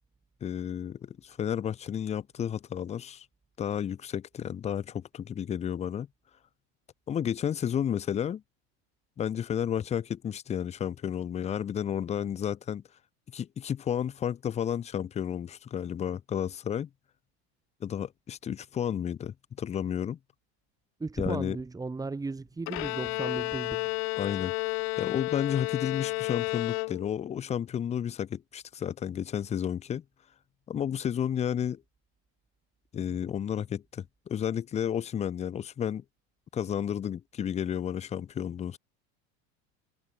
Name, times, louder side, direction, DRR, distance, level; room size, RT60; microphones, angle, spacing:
voice 1, 0.4-3.3 3.6-6.1 7.1-8.4 9.2-12.8 13.3-16.9 17.8-20.2 21.2-21.6 24.2-24.5 25.0-30.0 30.7-31.8 32.9-36.0 36.5-38.8, left 9 dB, 20° left, 0.7 m, -32 dB
voice 2, 21.0-23.9, right 3 dB, 10° right, 3.9 m, -35 dB
Bowed string instrument, 22.7-27.4, left 32 dB, 70° left, 2.3 m, -32 dB
supercardioid pair, 140°, 33 cm